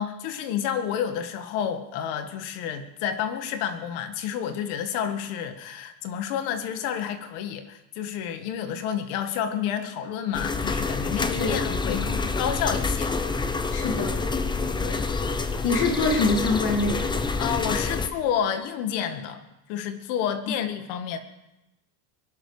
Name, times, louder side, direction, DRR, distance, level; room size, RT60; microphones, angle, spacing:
voice 1, 0.0-13.2 14.8-15.1 17.4-19.4 19.7-21.2, left 8 dB, 80° left, 8 dB, 2.0 m, -30 dB
sound 1, 10.3-18.1, left 4 dB, 10° left, 0.5 m, -27 dB
voice 2, 13.7-14.1 15.6-17.1, left 3 dB, 50° left, 2 dB, 2.5 m, -24 dB
22.5 x 12.0 x 5.0 m, 0.93 s
cardioid pair, 160°, 50 cm